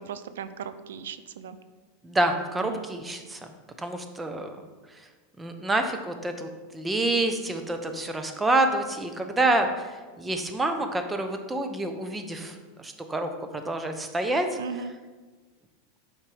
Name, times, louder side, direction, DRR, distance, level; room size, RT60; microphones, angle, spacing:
voice 1, 0.0-1.6 2.6-2.9 14.6-14.9, right 6 dB, 90° right, 12 dB, 0.4 m, -37 dB
voice 2, 2.0-3.4 3.8-4.6 5.4-14.5, right 2 dB, 10° right, 6 dB, 0.6 m, -28 dB
7.4 x 5.0 x 3.3 m, 1.3 s
supercardioid pair, 135°, 0 cm